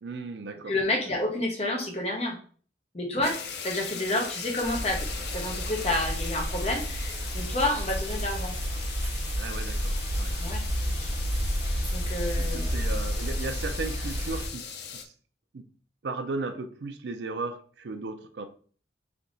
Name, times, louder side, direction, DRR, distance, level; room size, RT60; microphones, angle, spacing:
voice 1, 0.0-0.8 1.1-1.2 3.2-3.4 9.3-10.4 12.4-15.1 15.5-15.7 16.0-18.5, right 3 dB, 70° right, 0.5 m, -36 dB
voice 2, 0.7-2.4 2.9-3.4 3.6-5.1 5.3-8.5 10.4-10.6 11.9-12.8, left 1 dB, 35° left, 0.9 m, -29 dB
sound 1, 3.2-15.0, left 7 dB, 65° left, 0.5 m, -40 dB
sound 2, 4.6-14.5, equal, 30° right, 1.5 m, -31 dB
3.4 x 2.8 x 3.9 m
head